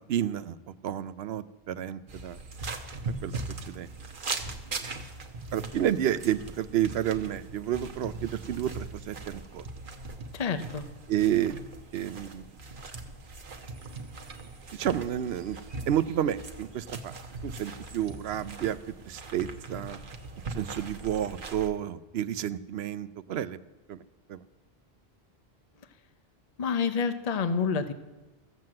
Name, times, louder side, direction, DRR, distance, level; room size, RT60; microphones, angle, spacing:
voice 1, 0.0-2.4 3.2-3.9 5.5-9.7 11.1-11.6 11.9-12.5 14.7-15.6 15.9-17.2 17.4-18.8 19.1-20.0 20.5-23.6 23.9-24.0 24.3-24.4, right 10 dB, 75° right, 15 dB, 0.8 m, -30 dB
sound 1, 2.1-21.7, right 3 dB, 55° right, 1.2 m, -40 dB
voice 2, 10.3-10.9 26.6-27.9, left 5 dB, 40° left, 11 dB, 0.8 m, -28 dB
14.5 x 7.7 x 7.6 m, 1.2 s
omnidirectional pair, 1.1 m